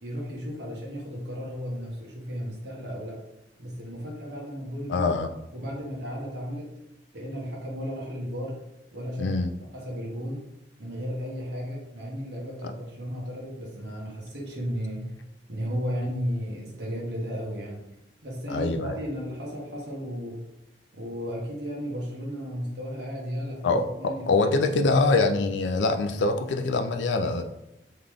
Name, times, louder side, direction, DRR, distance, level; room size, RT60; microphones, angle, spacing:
voice 1, 0.0-3.2 3.6-5.1 5.5-6.7 7.1-8.6 8.9-9.4 9.7-10.5 10.8-15.1 15.5-17.8 18.2-20.4 20.9-25.1, equal, 65° right, -3 dB, 1.1 m, -34 dB
voice 2, 4.9-5.3 9.2-9.5 18.5-19.0 23.6-27.4, left 3 dB, 75° left, 6 dB, 0.5 m, -24 dB
3.9 x 3.2 x 3.5 m, 0.85 s
head